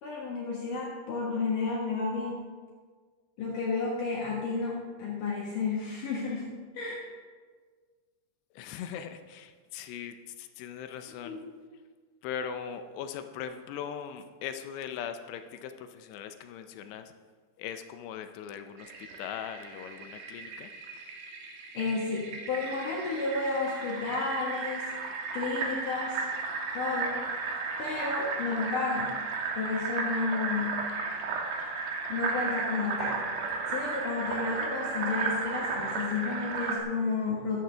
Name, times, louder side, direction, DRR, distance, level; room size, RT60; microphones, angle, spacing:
voice 1, 0.0-2.5 3.4-7.0 11.1-11.6 21.7-24.8 25.3-26.2 26.7-27.2 27.8-29.1 29.5-30.9 32.1-33.3 33.7-37.6, left 4 dB, 60° left, -4 dB, 2.4 m, -32 dB
voice 2, 8.6-11.4 12.2-17.1 17.6-18.9 19.2-20.7, left 8 dB, 80° left, 8 dB, 2.6 m, -40 dB
Fill (with liquid), 18.8-36.8, right 4 dB, 65° right, 2.2 m, -34 dB
14.0 x 11.0 x 3.4 m, 1.5 s
omnidirectional pair, 5.3 m